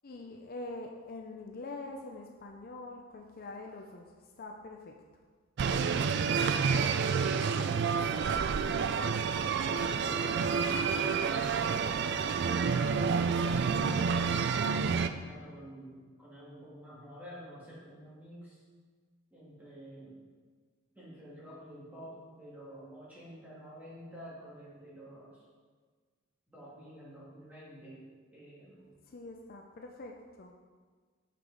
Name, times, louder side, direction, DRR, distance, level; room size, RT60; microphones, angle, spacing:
voice 1, 0.0-4.1 4.4-4.9 29.1-30.5, left 2 dB, 45° left, 2 dB, 0.5 m, -44 dB
sound 1, 5.6-15.1, right 6 dB, 55° right, 0.3 m, -29 dB
Run, 9.4-14.6, right 1 dB, 70° right, 2.4 m, -52 dB
voice 2, 9.7-11.1 15.0-18.6 19.3-20.2 20.9-25.4 26.5-28.0 28.3-28.8, right 1 dB, 10° right, -8 dB, 2.4 m, -49 dB
6.8 x 5.8 x 4.8 m, 1.5 s
head